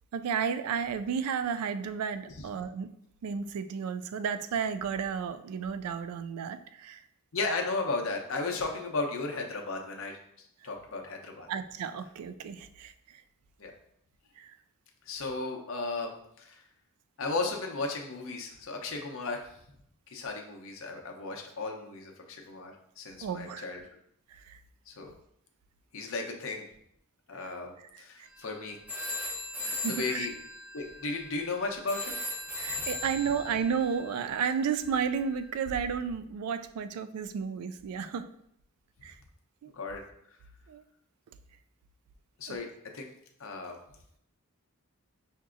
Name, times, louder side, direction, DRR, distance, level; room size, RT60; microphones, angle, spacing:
voice 1, 0.1-2.9 3.2-7.0 11.5-13.2 14.4-14.5 23.2-23.6 24.3-24.6 28.2-28.3 29.6-30.3 32.6-38.3 39.0-39.2 39.6-39.7 40.7-40.8 42.5-42.6, right 6 dB, 85° right, 12 dB, 0.3 m, -32 dB
voice 2, 7.3-10.2 10.6-11.5 13.6-13.7 15.1-16.6 17.2-19.4 20.1-23.8 24.9-25.1 25.9-26.7 27.3-28.8 29.6-30.3 30.7-32.2 32.7-32.9 39.7-40.0 42.4-42.7 42.9-43.1 43.4-43.8, left 3 dB, 65° left, 2 dB, 0.6 m, -35 dB
sound 1, 28.3-28.5 28.9-35.5, left 2 dB, 5° right, 0.4 m, -39 dB
5.7 x 2.6 x 2.4 m, 0.72 s
head